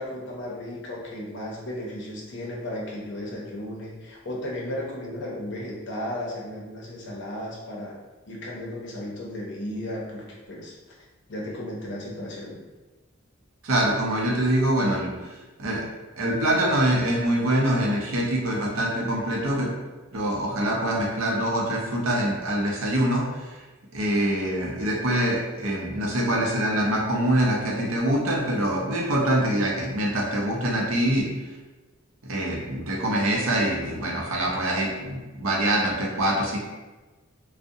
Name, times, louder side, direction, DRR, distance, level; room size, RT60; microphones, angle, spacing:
voice 1, 0.0-8.0 8.3-10.7 11.3-12.6, left 1 dB, 55° left, -3 dB, 0.6 m, -34 dB
voice 2, 13.6-15.1 15.6-15.8 16.2-19.7 20.1-23.2 23.9-31.3 32.3-36.6, right 1 dB, 75° right, -2 dB, 0.6 m, -24 dB
2.5 x 2.0 x 2.6 m, 1.2 s
head